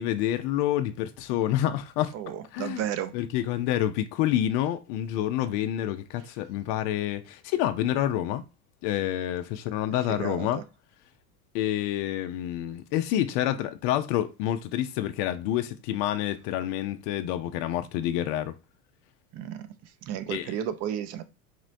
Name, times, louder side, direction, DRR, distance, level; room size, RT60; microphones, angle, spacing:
voice 1, 0.0-2.2 2.5-2.8 3.1-8.4 8.8-10.6 11.5-18.5 20.3-20.5, left 12 dB, 40° left, 0.4 m, -28 dB
voice 2, 2.1-3.1 10.1-10.6 19.3-21.2, right 10 dB, 35° right, 0.6 m, -33 dB
4.2 x 3.1 x 2.5 m
hypercardioid pair, 85°, 45 cm